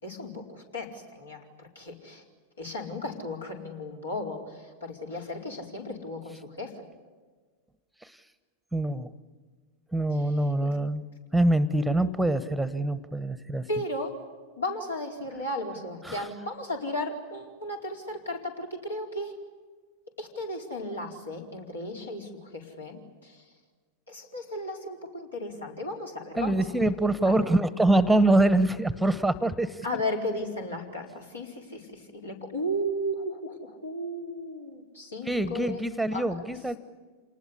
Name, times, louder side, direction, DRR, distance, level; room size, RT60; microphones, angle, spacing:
voice 1, 0.0-2.2 2.6-6.9 10.1-10.3 13.7-14.2 14.6-19.4 20.2-23.4 24.1-26.7 27.2-27.4 29.8-35.8 36.1-36.4, left 1 dB, 75° left, 1 dB, 4.7 m, -35 dB
voice 2, 8.7-9.1 9.9-11.0 11.3-13.7 16.0-16.3 26.4-29.8 35.3-36.8, right 1 dB, ahead, 16 dB, 1.1 m, -24 dB
28.0 x 20.0 x 10.0 m, 1.5 s
figure-of-eight pair, 90°, 0 cm